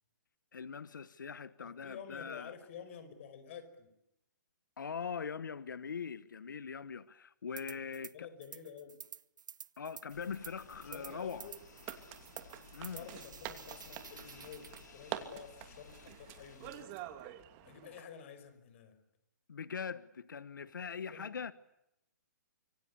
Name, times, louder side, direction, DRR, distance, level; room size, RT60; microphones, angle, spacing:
voice 1, 0.5-2.5 4.8-8.3 9.8-11.5 12.7-13.1 19.5-21.5, left 6 dB, 90° left, 1.2 m, -42 dB
voice 2, 1.6-3.9 7.7-9.0 10.9-11.6 12.7-17.0 17.6-19.0 20.6-20.7 21.1-21.3, left 7 dB, 40° left, 5.4 m, -50 dB
sound 1, 7.6-8.1 8.4-14.8, right 7 dB, 75° right, 1.0 m, -51 dB
sound 2, 10.1-16.8, left 6 dB, 65° left, 5.2 m, -57 dB
sound 3, 10.2-18.0, right 13 dB, 25° right, 2.7 m, -48 dB
26.0 x 24.0 x 8.4 m
hypercardioid pair, 160°, 10 cm